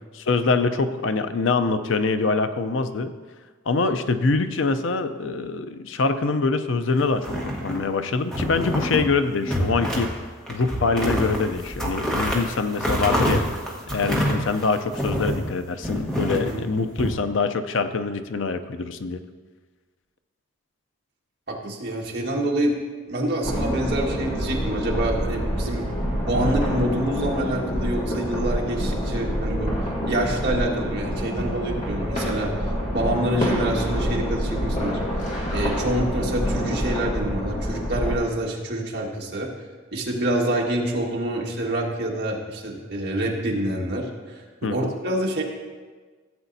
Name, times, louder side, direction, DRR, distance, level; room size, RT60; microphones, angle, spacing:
voice 1, 0.1-3.1 3.7-10.1 10.5-13.4 13.9-19.2 44.6-44.9, left 4 dB, 70° left, 10 dB, 0.5 m, -24 dB
sound 1, 7.2-7.9 8.3-9.1 9.4-10.1 10.5-15.4 15.8-17.1, equal, 5° left, 1.2 m, -26 dB
voice 2, 16.3-16.6 21.5-22.8 23.1-25.9 26.2-29.7 30.1-35.0 35.5-39.5 39.9-45.4, right 1 dB, 55° right, -2 dB, 1.6 m, -27 dB
sound 2, 23.4-38.1, equal, 35° left, 2.0 m, -26 dB
15.5 x 8.0 x 2.7 m, 1.4 s
head